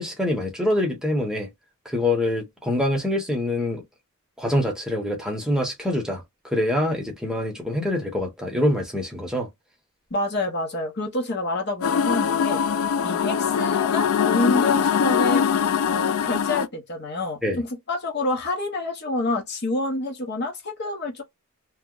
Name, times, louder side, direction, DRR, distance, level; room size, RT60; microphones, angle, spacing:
voice 1, 0.0-1.5 1.8-3.8 4.4-9.5 17.4-17.6, left 1 dB, 5° right, 0.8 m, -25 dB
voice 2, 10.1-12.6 13.0-15.5 15.8-21.2, left 2 dB, 50° left, 0.9 m, -27 dB
sound 1, 11.8-16.7, left 7 dB, 65° left, 0.3 m, -22 dB
2.9 x 2.0 x 3.6 m
head